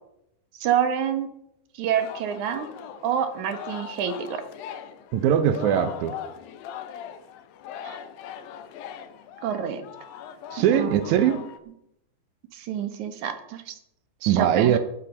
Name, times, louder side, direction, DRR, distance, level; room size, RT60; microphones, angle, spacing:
voice 1, 0.6-1.3 1.8-2.7 3.0-4.4 7.8-8.0 9.4-9.8 10.6-11.0 12.5-13.8 14.2-14.8, right 8 dB, 60° right, 8 dB, 2.2 m, -27 dB
Singing, 1.9-11.6, left 9 dB, 75° left, 2.5 m, -40 dB
voice 2, 5.1-6.2 10.5-11.4 14.3-14.8, right 10 dB, 80° right, 11 dB, 1.7 m, -21 dB
15.5 x 8.6 x 6.3 m, 0.80 s
omnidirectional pair, 4.5 m